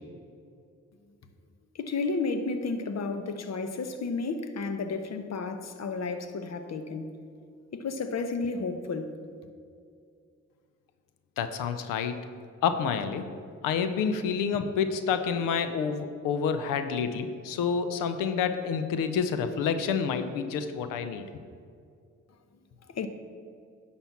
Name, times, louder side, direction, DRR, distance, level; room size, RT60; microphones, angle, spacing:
voice 1, 1.7-7.1 7.7-9.2 22.9-23.1, left 4 dB, 55° left, 1.0 m, -32 dB
voice 2, 11.4-12.2 12.6-13.3 13.6-21.2, left 6 dB, 90° left, 0.6 m, -28 dB
10.5 x 4.3 x 7.1 m
supercardioid pair, 45°, 32 cm